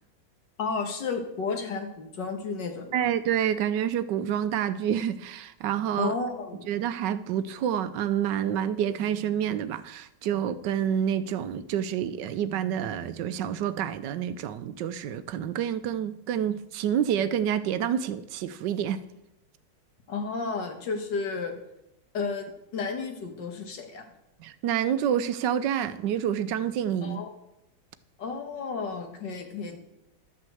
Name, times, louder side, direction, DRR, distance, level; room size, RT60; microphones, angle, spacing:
voice 1, 0.6-3.1 6.0-6.7 20.1-21.5 22.1-24.0 27.0-27.3 28.2-29.8, left 4 dB, 70° left, 2.1 m, -32 dB
voice 2, 2.9-6.1 6.7-19.0 24.4-27.2, right 9 dB, 75° right, 1.2 m, -28 dB
12.5 x 5.9 x 7.7 m
omnidirectional pair, 2.0 m